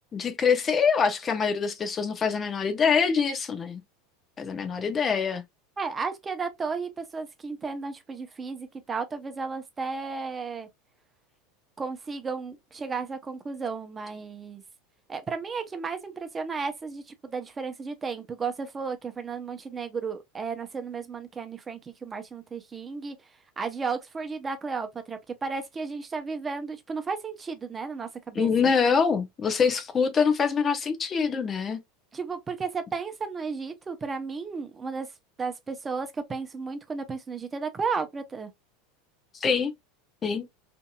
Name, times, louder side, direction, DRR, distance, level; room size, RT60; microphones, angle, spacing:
voice 1, 0.1-3.8 4.4-5.4 28.4-31.8 39.4-39.7 40.2-40.5, left 6 dB, 30° left, 0.6 m, -24 dB
voice 2, 5.8-10.7 11.8-14.6 15.1-23.2 23.6-28.7 32.1-35.1 35.4-38.5, right 5 dB, 25° right, 0.6 m, -33 dB
2.7 x 2.6 x 2.2 m
hypercardioid pair, 90°, 0 cm